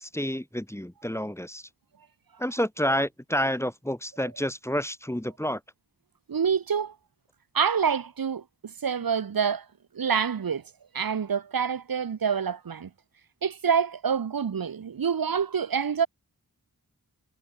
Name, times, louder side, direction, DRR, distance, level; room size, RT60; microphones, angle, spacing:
voice 1, 0.0-1.6 2.4-5.6, equal, 5° left, 1.3 m, -29 dB
voice 2, 6.3-6.9 7.5-9.6 9.9-10.6 10.9-12.9 13.4-16.1, right 6 dB, 75° right, 1.2 m, -27 dB
wide cardioid pair, 65°, 35 cm